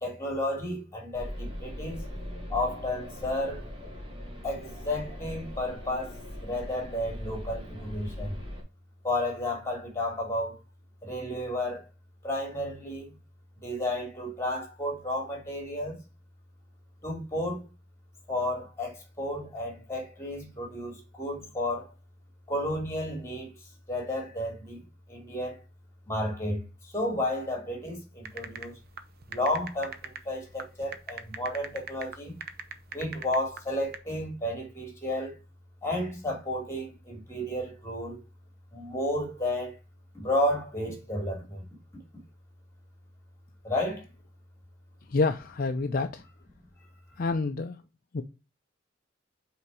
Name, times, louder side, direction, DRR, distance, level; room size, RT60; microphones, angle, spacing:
voice 1, 0.0-2.1 2.5-3.6 4.4-6.2 6.4-8.4 9.0-10.6 11.0-11.9 12.2-13.1 13.6-16.0 17.0-17.7 18.3-21.9 22.5-23.5 23.9-24.8 25.1-25.6 26.1-28.7 29.3-32.3 32.9-35.3 35.8-38.2 38.7-39.7 40.1-41.6 43.6-44.0, left 1 dB, 15° left, 2.7 m, -32 dB
sound 1, 1.1-8.6, equal, 25° right, 2.1 m, -40 dB
sound 2, 28.3-34.0, right 6 dB, 55° right, 0.7 m, -40 dB
voice 2, 45.1-46.2 47.2-47.8 48.1-48.2, left 3 dB, 50° left, 0.5 m, -28 dB
5.7 x 3.9 x 4.7 m
head